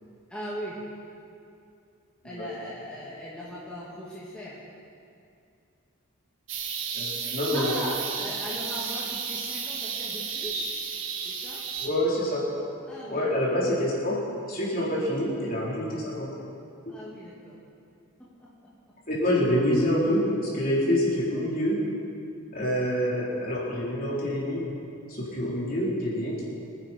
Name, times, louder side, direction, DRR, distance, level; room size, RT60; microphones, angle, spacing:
voice 1, 0.3-0.8 2.2-4.6 7.5-10.7 11.2-11.6 12.9-13.2 16.9-17.6 18.2-18.9, equal, 5° left, -9 dB, 2.3 m, -39 dB
sound 1, 6.5-11.9, right 6 dB, 65° right, 1.5 m, -33 dB
voice 2, 6.9-7.8 11.8-12.4 13.1-14.2 14.4-16.3 19.1-20.2 20.5-21.8 22.5-24.7 25.1-26.4, equal, 40° left, -7 dB, 4.2 m, -26 dB
25.5 x 10.0 x 4.6 m, 2.4 s
head